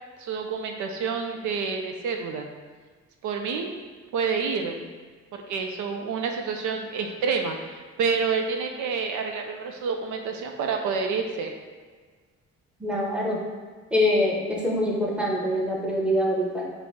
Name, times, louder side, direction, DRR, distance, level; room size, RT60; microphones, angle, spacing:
voice 1, 0.2-2.5 3.2-3.8 4.1-4.8 5.3-11.5, right 5 dB, 80° right, 4 dB, 0.5 m, -28 dB
voice 2, 12.8-13.4 13.9-16.7, left 1 dB, 5° right, -3 dB, 0.8 m, -24 dB
4.8 x 2.1 x 3.6 m, 1.5 s
cardioid pair, 90°, 30 cm